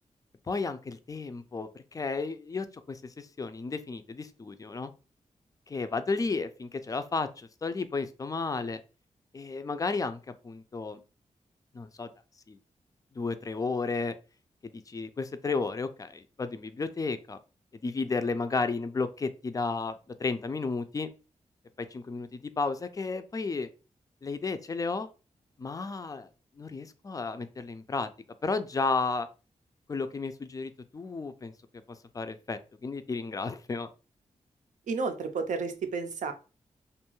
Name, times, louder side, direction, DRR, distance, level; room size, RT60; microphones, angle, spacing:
voice 1, 0.5-4.9 5.7-8.8 9.3-10.2 10.4-11.0 11.7-12.1 12.5-12.6 13.2-14.1 14.6-17.4 17.7-19.9 20.2-21.1 21.8-23.7 24.2-25.1 25.6-26.3 26.6-28.1 28.4-29.3 29.9-31.5 32.1-33.9, left 4 dB, 30° left, 10 dB, 0.3 m, -33 dB
voice 2, 34.9-36.3, right 4 dB, 75° right, 7 dB, 0.5 m, -31 dB
2.5 x 2.3 x 2.9 m, 0.33 s
cardioid pair, 75°, 13 cm